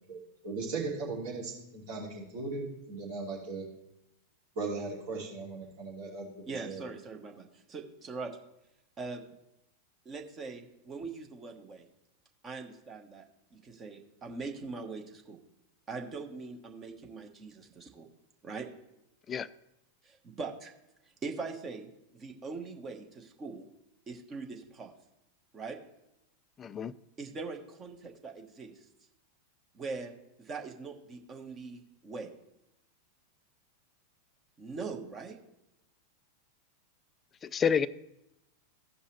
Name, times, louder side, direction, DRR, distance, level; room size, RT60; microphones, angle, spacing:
voice 1, 0.4-3.6 4.5-6.8, right 3 dB, 50° right, -4 dB, 2.9 m, -38 dB
voice 2, 6.4-8.3 9.0-9.3 10.0-11.8 12.4-15.4 15.9-18.1 18.4-18.7 20.0-20.7 21.2-23.7 24.1-24.9 25.5-25.8 27.2-28.8 29.7-32.3 34.6-35.4, right 4 dB, 25° right, 3 dB, 1.2 m, -42 dB
voice 3, 26.6-26.9 37.4-37.9, left 7 dB, 25° left, 18 dB, 0.3 m, -28 dB
15.5 x 5.3 x 3.2 m, 0.86 s
figure-of-eight pair, 90°, 0 cm